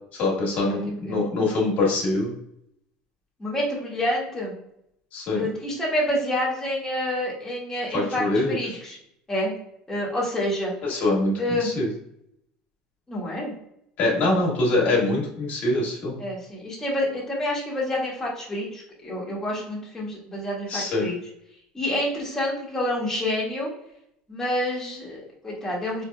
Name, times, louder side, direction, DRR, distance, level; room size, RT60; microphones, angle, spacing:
voice 1, 0.1-2.3 5.1-5.5 7.9-8.8 10.8-11.9 14.0-16.2 20.7-21.1, left 2 dB, 55° left, -3 dB, 1.4 m, -24 dB
voice 2, 3.4-4.6 5.3-9.0 9.3-9.5 9.9-10.7 11.4-11.7 13.1-13.5 16.2-21.2 21.7-23.7 24.3-26.0, left 1 dB, 15° left, -5 dB, 1.3 m, -28 dB
4.2 x 3.1 x 2.2 m, 0.76 s
supercardioid pair, 100°, 3 cm